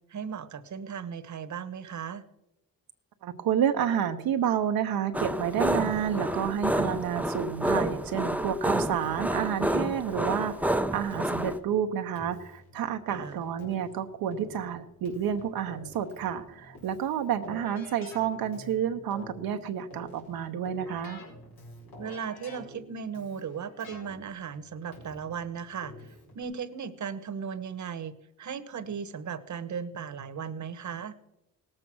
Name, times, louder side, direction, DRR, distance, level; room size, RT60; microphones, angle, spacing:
voice 1, 0.1-2.2 13.1-13.4 22.0-31.1, right 7 dB, 55° right, 11 dB, 1.1 m, -37 dB
voice 2, 3.2-21.2, right 9 dB, 90° right, 6 dB, 0.9 m, -30 dB
sound 1, 5.1-11.6, right 1 dB, 5° right, 0.6 m, -29 dB
Keyboard (musical), 9.0-26.4, left 1 dB, 85° left, 5.0 m, -49 dB
17.5 x 7.7 x 6.2 m, 0.89 s
cardioid pair, 85°, 35 cm